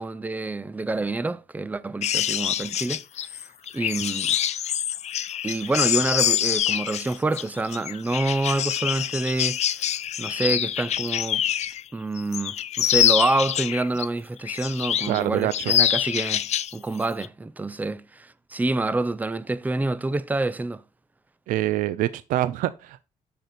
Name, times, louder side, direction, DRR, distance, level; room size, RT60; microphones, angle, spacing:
voice 1, 0.0-3.0 3.3-3.4 3.7-4.4 5.4-9.9 10.2-11.4 11.9-16.5 16.7-20.8, right 2 dB, 10° right, 0.5 m, -27 dB
sound 1, 2.0-11.8 12.2-14.1 14.5-15.2 15.5-16.7 17.0-17.3, left 10 dB, 55° left, 0.5 m, -25 dB
voice 2, 15.1-15.7 21.5-23.0, right 13 dB, 80° right, 0.4 m, -25 dB
6.6 x 6.0 x 4.1 m
cardioid pair, 85°, 14 cm